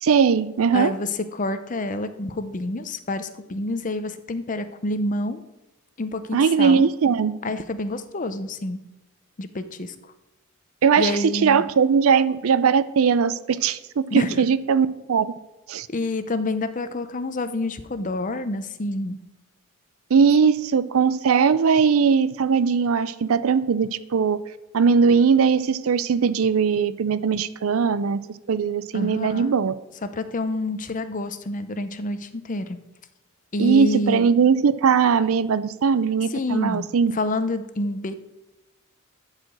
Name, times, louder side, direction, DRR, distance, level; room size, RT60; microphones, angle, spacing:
voice 1, 0.0-0.9 6.3-7.3 10.8-15.3 15.7-15.9 20.1-24.4 24.7-29.7 33.6-37.1, right 6 dB, 70° right, 16 dB, 0.5 m, -20 dB
voice 2, 0.7-5.4 6.0-6.8 7.4-8.8 9.4-10.1 11.0-11.6 14.1-14.4 15.9-19.2 28.9-29.5 30.0-32.8 33.5-34.2 36.3-36.8 37.1-38.1, left 2 dB, 35° left, 11 dB, 0.6 m, -28 dB
11.5 x 4.9 x 7.6 m, 1.0 s
head